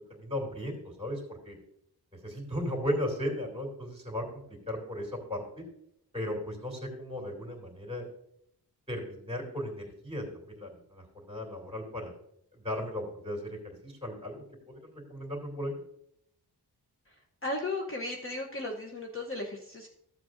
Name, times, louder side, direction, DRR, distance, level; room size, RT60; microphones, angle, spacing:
voice 1, 0.1-1.6 2.1-5.6 6.1-8.0 8.9-12.1 12.5-15.8, left 1 dB, 15° right, 1 dB, 2.6 m, -36 dB
voice 2, 17.4-19.9, left 2 dB, 30° left, 0 dB, 0.9 m, -35 dB
13.5 x 7.5 x 2.6 m, 0.75 s
wide cardioid pair, 120°, 40 cm